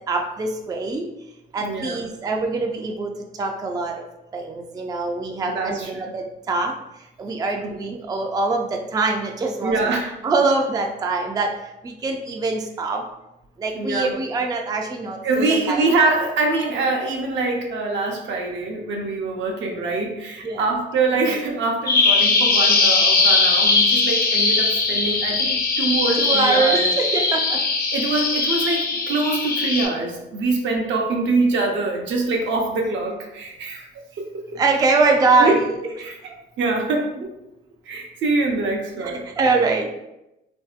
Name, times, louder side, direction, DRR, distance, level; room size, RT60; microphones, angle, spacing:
voice 1, 0.1-1.0 1.5-3.1 3.4-4.1 4.3-6.7 7.2-10.0 10.2-11.5 11.8-13.0 13.6-15.8 20.4-20.6 26.2-27.6 34.6-35.6 39.0-39.9, right 3 dB, 20° right, 2 dB, 0.3 m, -23 dB
voice 2, 1.5-2.0 5.4-6.1 7.6-7.7 9.6-10.1 13.7-14.1 15.2-27.2 27.9-33.9 34.2-34.6 35.3-37.3 37.9-39.3, right 3 dB, 70° right, 1 dB, 0.7 m, -24 dB
Bird vocalization bird call bird song, 21.9-29.9, left 3 dB, 50° left, 0.6 m, -20 dB
2.9 x 2.6 x 2.4 m, 0.91 s
cardioid pair, 90°, 20 cm